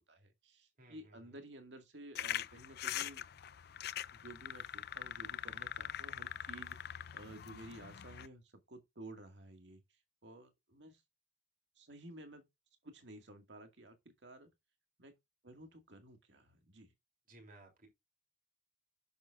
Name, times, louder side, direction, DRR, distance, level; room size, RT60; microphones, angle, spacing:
voice 1, 0.1-3.2 4.1-6.8 7.1-9.8 10.2-11.0 11.8-12.4 12.8-14.5 15.0-15.1 15.4-16.9, right 1 dB, 70° right, 2.0 m, -53 dB
voice 2, 0.8-1.4 17.3-17.9, right 2 dB, 50° right, 3.1 m, -59 dB
sound 1, 2.2-8.3, left 10 dB, 60° left, 0.4 m, -43 dB
10.0 x 7.1 x 2.5 m
head